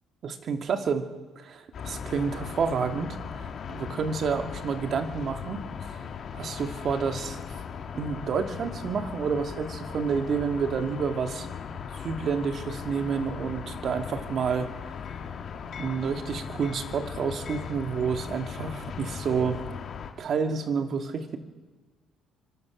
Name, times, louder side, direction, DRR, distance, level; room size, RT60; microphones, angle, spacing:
voice 1, 0.2-1.1 1.4-6.0 6.3-7.4 8.0-11.5 12.0-14.7 15.8-19.7 20.2-21.4, right 6 dB, 45° right, 6 dB, 2.5 m, -29 dB
sound 1, 1.7-20.1, left 6 dB, 45° left, 3.2 m, -38 dB
26.0 x 25.5 x 6.5 m, 1.4 s
cardioid pair, 130°, 0 cm